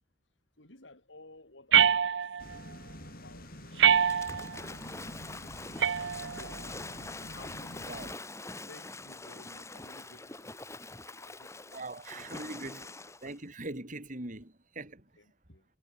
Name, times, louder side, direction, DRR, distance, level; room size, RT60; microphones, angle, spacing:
voice 1, 0.6-2.6 3.1-4.1 5.8-8.3 8.7-11.8 12.2-12.9 15.2-15.6, left 2 dB, 85° left, 6.4 m, -56 dB
sound 1, 1.7-2.6 3.8-4.6 5.8-6.6, right 8 dB, 70° right, 0.5 m, -25 dB
sound 2, 2.4-8.1, left 1 dB, 55° left, 7.8 m, -47 dB
Waves surf / Splash splatter, 4.1-13.4, left 2 dB, 15° left, 2.0 m, -44 dB
voice 2, 11.7-12.9 13.2-15.0, right 2 dB, 45° right, 3.5 m, -41 dB
head